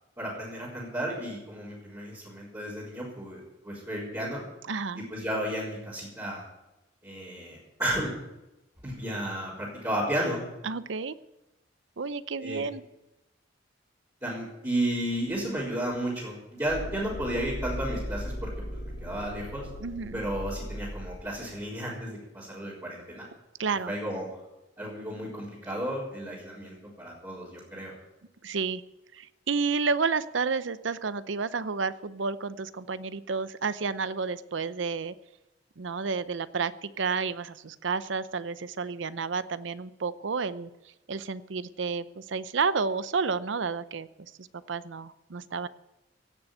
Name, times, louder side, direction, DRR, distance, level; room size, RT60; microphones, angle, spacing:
voice 1, 0.2-4.4 5.1-6.4 7.0-8.1 8.8-10.4 12.4-12.6 14.2-19.7 20.1-23.2 23.9-24.4 24.8-27.9, right 1 dB, 20° right, -10 dB, 4.2 m, -33 dB
voice 2, 4.7-5.0 10.6-11.2 12.0-12.8 19.8-20.2 23.6-23.9 28.4-28.8 29.1-35.1 35.8-40.7 41.1-45.7, right 4 dB, 75° right, 14 dB, 0.6 m, -31 dB
sound 1, 16.7-21.5, equal, 60° left, 3.4 m, -37 dB
16.5 x 7.1 x 9.3 m, 0.96 s
head